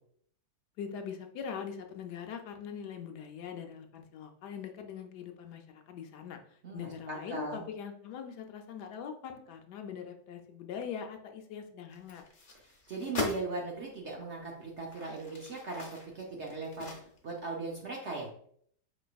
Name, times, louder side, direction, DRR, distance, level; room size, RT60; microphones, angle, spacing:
voice 1, 0.8-12.2, left 7 dB, 75° left, 4 dB, 1.2 m, -42 dB
voice 2, 6.6-7.6 12.9-16.9 17.2-18.3, right 3 dB, 60° right, -2 dB, 0.8 m, -38 dB
sound 1, 11.9-13.5 14.1-14.2 14.8-17.4 17.8-17.9, left 2 dB, 45° left, 0.7 m, -40 dB
4.5 x 4.2 x 2.3 m, 0.62 s
omnidirectional pair, 1.8 m